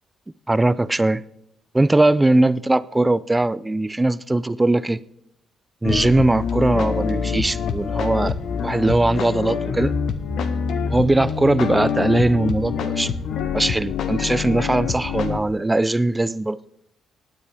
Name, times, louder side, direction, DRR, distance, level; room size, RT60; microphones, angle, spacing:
voice 1, 0.5-1.2 1.7-5.0 5.8-8.4 8.6-9.9 10.9-13.1 13.5-16.6, right 2 dB, 15° right, 0.4 m, -20 dB
sound 1, 5.8-15.4, left 6 dB, 70° left, 1.0 m, -25 dB
17.5 x 9.7 x 3.4 m
cardioid pair, 90°, 0 cm